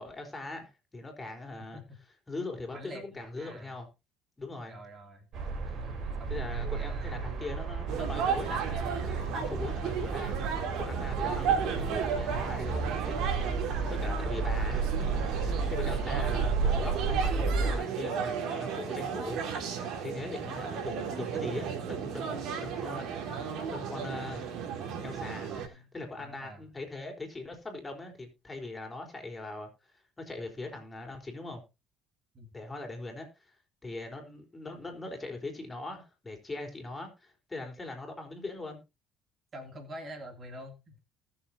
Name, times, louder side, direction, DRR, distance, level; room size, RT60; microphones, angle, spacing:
voice 1, 0.0-1.8 2.3-3.9 4.4-4.8 5.7-5.8 6.3-19.4 19.7-24.6 25.0-31.6 32.5-38.8, left 2 dB, 15° left, 3 dB, 4.5 m, -41 dB
voice 2, 2.7-3.8 4.7-5.3 5.9-7.1 16.3-16.4 25.5-26.7 32.3-32.5 39.5-41.0, equal, 35° right, 4 dB, 3.0 m, -47 dB
sound 1, 5.3-17.8, right 4 dB, 55° right, 4.0 m, -32 dB
sound 2, 7.9-25.7, right 7 dB, 70° right, 3.4 m, -34 dB
19.5 x 7.2 x 2.9 m, 0.26 s
cardioid pair, 100°, 0 cm